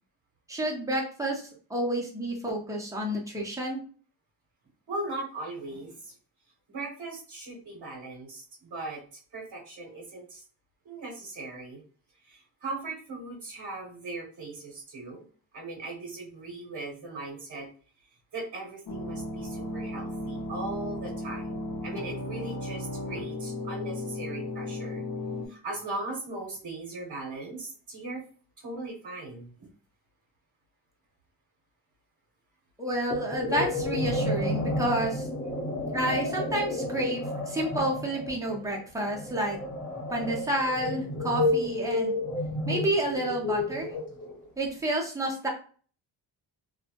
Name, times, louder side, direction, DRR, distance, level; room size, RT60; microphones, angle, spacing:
voice 1, 0.5-1.4 1.7-3.8 32.8-35.3 35.9-39.6 40.1-42.1 42.7-43.9 44.6-45.5, right 1 dB, 5° right, -2 dB, 0.7 m, -29 dB
voice 2, 4.9-6.1 6.7-10.4 10.8-11.8 12.2-15.2 15.5-17.7 18.3-25.0 25.5-28.2 28.6-29.5, right 2 dB, 55° right, -2 dB, 0.9 m, -39 dB
sound 1, 18.9-25.5, left 1 dB, 50° left, 0.6 m, -35 dB
sound 2, 33.1-44.4, left 2 dB, 25° left, 1.0 m, -31 dB
2.7 x 2.2 x 2.8 m, 0.42 s
wide cardioid pair, 130°, 44 cm